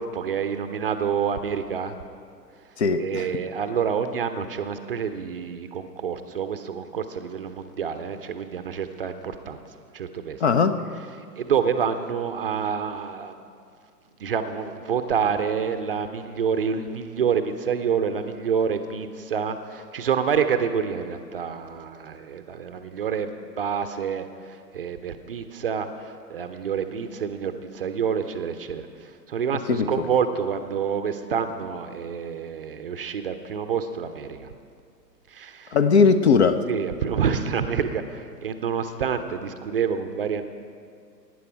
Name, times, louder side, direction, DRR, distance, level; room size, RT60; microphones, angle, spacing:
voice 1, 0.0-2.0 3.0-9.6 9.9-10.4 10.9-13.3 14.2-34.5 35.3-35.8 36.7-40.4, right 7 dB, 35° right, 9 dB, 0.6 m, -28 dB
voice 2, 2.8-3.3 10.4-10.8 29.7-29.9 35.7-36.7, left 5 dB, 40° left, 11 dB, 0.6 m, -19 dB
17.5 x 9.6 x 4.8 m, 2.3 s
figure-of-eight pair, 115°, 50 cm